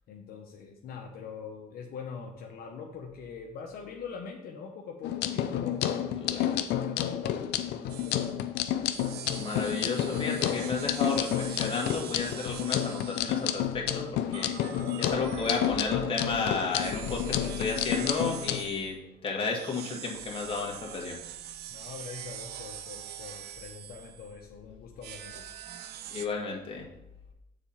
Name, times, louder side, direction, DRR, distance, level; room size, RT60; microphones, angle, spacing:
voice 1, 0.1-5.9 6.2-6.6 6.9-8.4 21.7-25.5, left 6 dB, 65° left, 0 dB, 0.9 m, -43 dB
sound 1, 5.0-18.6, left 11 dB, 80° left, 0.6 m, -30 dB
voice 2, 6.1-6.5 9.3-21.2 26.1-26.9, left 4 dB, 30° left, -1 dB, 1.8 m, -33 dB
sound 2, 7.9-8.3 8.9-13.6 14.3-16.2 16.7-18.9 19.5-24.4 25.0-26.3, right 11 dB, 75° right, 0.5 m, -43 dB
7.0 x 4.3 x 5.6 m, 0.88 s
cardioid pair, 110°, 17 cm